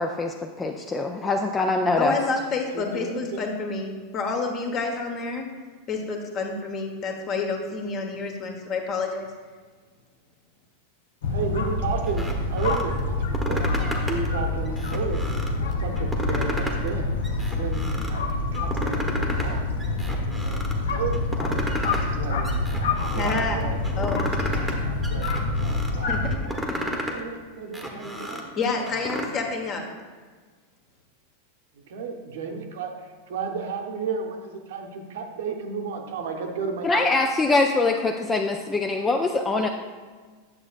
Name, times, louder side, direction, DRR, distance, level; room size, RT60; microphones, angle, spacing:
voice 1, 0.0-2.2 36.8-39.7, left 3 dB, 15° left, 4 dB, 0.4 m, -23 dB
voice 2, 1.9-5.4 5.9-9.3 23.1-23.7 24.0-24.2 26.1-26.4 28.6-29.9, left 4 dB, 35° left, 2 dB, 1.1 m, -28 dB
voice 3, 2.7-3.5 11.3-13.6 14.1-17.2 17.5-20.6 20.9-21.2 22.1-24.2 24.6-26.6 27.1-28.9 31.8-32.9 33.3-37.1, right 5 dB, 55° right, 3 dB, 0.9 m, -33 dB
sound 1, 11.2-26.4, left 2 dB, 60° left, 0.7 m, -27 dB
sound 2, 12.1-12.8 13.2-14.3 14.7-15.5 16.0-16.9 17.2-18.1 18.5-19.5 19.8-20.7 21.1-22.1 22.4-23.4 23.8-24.8 25.0-25.9 26.3-27.2 27.6-29.3, equal, 5° right, 1.0 m, -32 dB
9.6 x 7.2 x 2.4 m, 1.5 s
figure-of-eight pair, 90°, 0 cm